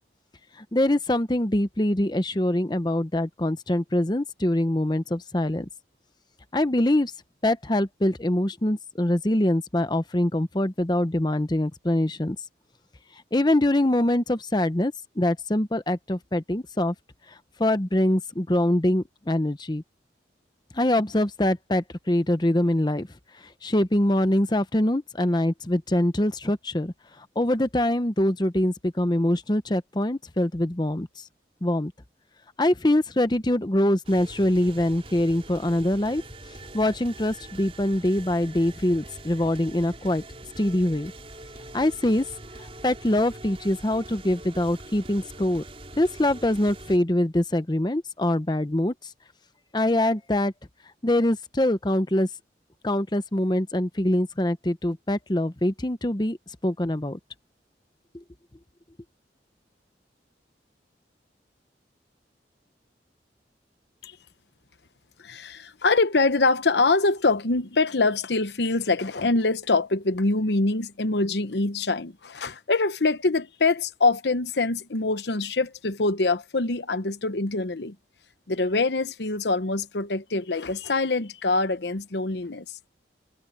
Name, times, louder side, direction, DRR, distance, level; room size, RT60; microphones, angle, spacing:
voice 1, 0.6-5.7 6.5-7.1 7.4-12.4 13.3-16.9 17.3-19.8 20.7-23.1 23.6-31.2 31.6-31.9 32.6-36.2 36.7-40.2 40.6-41.1 41.7-42.2 42.6-45.6 46.0-48.9 49.7-50.5 51.0-52.3 52.8-56.4 56.6-57.2, left 1 dB, 25° left, 0.8 m, -24 dB
sound 1, 34.1-47.0, right 2 dB, 30° right, 4.6 m, -44 dB
voice 2, 65.2-77.9 78.5-82.8, left 3 dB, 75° left, 0.9 m, -24 dB
head